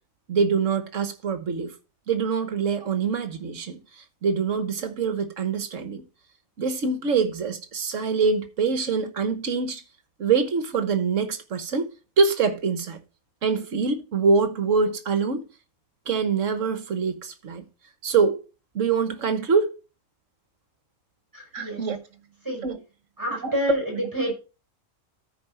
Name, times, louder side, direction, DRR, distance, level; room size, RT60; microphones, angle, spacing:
voice 1, 0.3-1.7 2.1-6.0 6.6-9.8 10.2-11.9 12.2-13.0 13.4-15.4 16.1-17.6 18.0-18.4 18.7-19.7 21.5-22.0 22.6-22.8 23.4-23.5, right 5 dB, 60° right, 1.4 m, -24 dB
voice 2, 21.3-21.8 22.4-22.6 23.2-24.3, equal, 15° right, 5.3 m, -28 dB
13.5 x 4.8 x 4.3 m
omnidirectional pair, 1.5 m